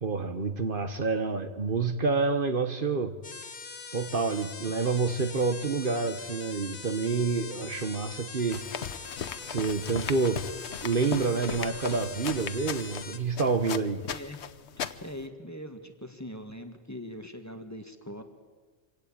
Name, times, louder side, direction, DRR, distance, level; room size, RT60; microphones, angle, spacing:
voice 1, 0.0-3.2 3.9-8.7 9.4-10.5 10.8-14.0, right 4 dB, 55° right, 1.3 m, -28 dB
sound 1, 3.2-13.2, left 5 dB, 55° left, 1.4 m, -42 dB
sound 2, 8.5-15.3, left 7 dB, 80° left, 1.2 m, -38 dB
voice 2, 14.1-14.4 15.0-18.2, left 1 dB, 15° left, 1.8 m, -41 dB
25.5 x 17.5 x 8.7 m
omnidirectional pair, 1.1 m